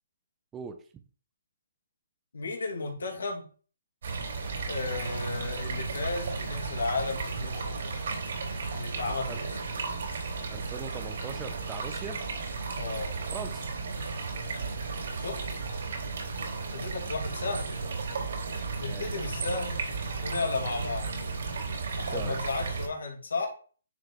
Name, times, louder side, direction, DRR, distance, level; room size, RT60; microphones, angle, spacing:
voice 1, 0.5-0.8 9.3-9.4 10.5-12.2 13.3-13.7 18.9-19.2 22.0-22.4, right 6 dB, 15° right, 7 dB, 0.7 m, -40 dB
voice 2, 2.3-3.5 4.7-7.9 8.7-9.5 12.8-13.1 15.2-15.4 16.7-17.8 18.8-19.8 20.2-21.1 22.0-23.5, left 3 dB, 85° left, 1 dB, 2.5 m, -33 dB
sound 1, 4.0-22.9, right 4 dB, 65° right, 3.2 m, -34 dB
9.6 x 4.8 x 3.2 m, 0.41 s
hypercardioid pair, 160°, 0 cm